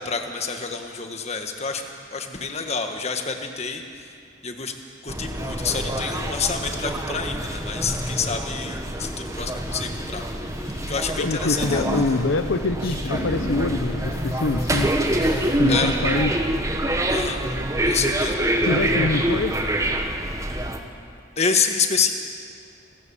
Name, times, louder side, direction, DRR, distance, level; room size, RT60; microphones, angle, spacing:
voice 1, 0.0-1.8 2.1-3.8 4.4-4.7 5.0-10.2 10.9-11.8 15.7-15.9 17.1-17.4 17.8-18.4 21.4-22.1, left 5 dB, 35° left, 5 dB, 1.6 m, -27 dB
sound 1, 5.1-20.8, right 1 dB, 15° right, 1.3 m, -26 dB
sound 2, 9.5-11.2 11.5-15.6, equal, 50° left, 2.8 m, -34 dB
voice 2, 11.2-14.9 15.6-16.4 18.6-19.6, left 3 dB, 80° left, 9 dB, 0.8 m, -25 dB
28.0 x 14.0 x 7.1 m, 2.3 s
head